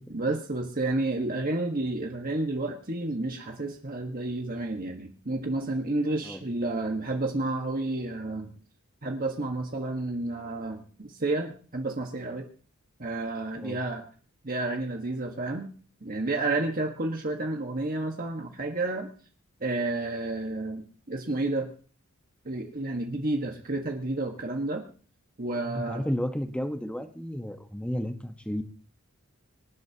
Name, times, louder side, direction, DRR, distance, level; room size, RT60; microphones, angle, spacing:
voice 1, 0.1-8.5 9.0-12.5 13.0-14.1 14.4-15.7 16.0-19.1 19.6-21.7 22.4-24.8 25.4-26.1, right 2 dB, 40° right, 2 dB, 1.5 m, -30 dB
voice 2, 25.7-28.6, equal, 5° left, 6 dB, 1.2 m, -32 dB
25.5 x 12.0 x 2.9 m, 0.42 s
head